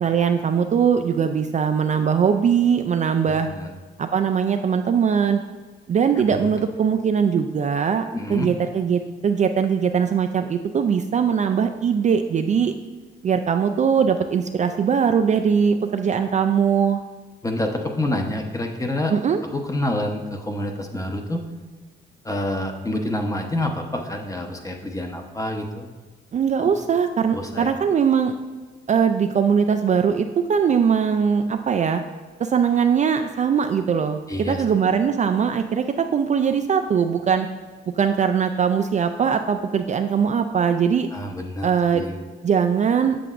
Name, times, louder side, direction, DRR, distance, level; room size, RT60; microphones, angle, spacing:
voice 1, 0.0-3.5 4.0-5.4 5.9-12.7 13.2-17.0 19.1-19.4 26.3-28.3 28.9-32.0 32.4-37.5 37.9-41.1 41.6-42.0 42.4-43.2, right 7 dB, 40° right, 7 dB, 0.4 m, -21 dB
voice 2, 3.2-3.7 6.3-6.4 8.1-8.5 17.4-19.1 19.5-21.4 22.2-25.9 26.6-26.7 27.3-27.7 34.3-34.6 41.1-42.2, left 1 dB, 15° left, 3 dB, 0.8 m, -27 dB
7.7 x 6.7 x 2.5 m, 1.4 s
cardioid pair, 90°, 20 cm